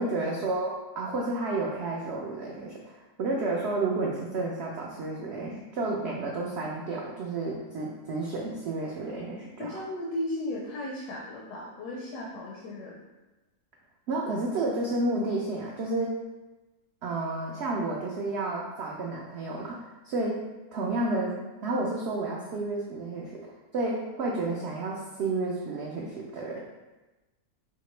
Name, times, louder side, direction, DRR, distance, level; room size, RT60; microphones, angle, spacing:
voice 1, 0.0-9.8 14.1-16.2 17.0-20.4 20.7-26.7, right 2 dB, 75° right, -2 dB, 0.6 m, -31 dB
voice 2, 9.6-13.0, left 1 dB, 80° left, -2 dB, 1.1 m, -35 dB
4.4 x 2.8 x 3.1 m, 1.1 s
omnidirectional pair, 1.6 m